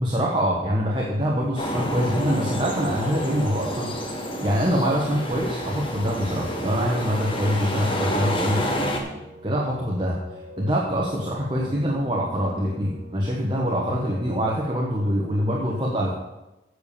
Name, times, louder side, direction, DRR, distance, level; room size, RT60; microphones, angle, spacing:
voice 1, 0.0-8.7 9.4-10.2 10.6-16.1, equal, 25° right, -4 dB, 1.2 m, -24 dB
Piano, 1.0-15.3, equal, 50° right, 2.3 m, -42 dB
sound 1, 1.6-9.0, equal, 30° left, 1.3 m, -29 dB
8.1 x 7.0 x 6.8 m, 0.99 s
head